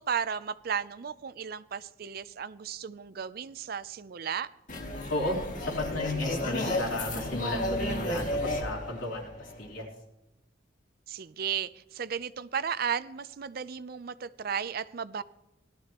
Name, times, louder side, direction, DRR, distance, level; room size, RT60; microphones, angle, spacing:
voice 1, 0.0-4.5 11.1-15.2, right 7 dB, 50° right, 15 dB, 0.4 m, -34 dB
sound 1, 4.7-9.8, left 1 dB, 40° left, 2.0 m, -33 dB
voice 2, 5.1-9.9, left 1 dB, 85° left, -1 dB, 3.5 m, -33 dB
18.0 x 12.5 x 2.9 m, 0.94 s
head